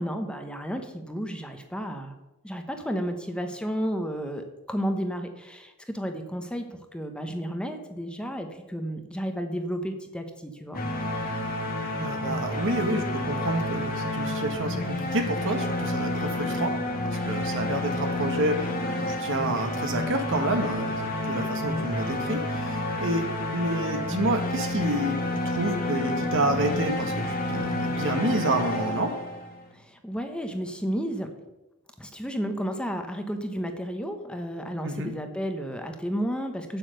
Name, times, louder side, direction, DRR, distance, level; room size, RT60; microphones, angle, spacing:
voice 1, 0.0-2.1 2.4-10.8 29.7-31.3 32.0-36.8, equal, 5° left, 5 dB, 0.9 m, -32 dB
sound 1, 10.7-29.7, left 1 dB, 40° left, 1.6 m, -30 dB
voice 2, 12.0-16.7 17.0-18.8 19.1-23.2 23.5-25.2 25.4-29.1 34.8-35.1, right 1 dB, 60° right, 6 dB, 1.5 m, -29 dB
8.6 x 7.6 x 6.6 m, 1.0 s
head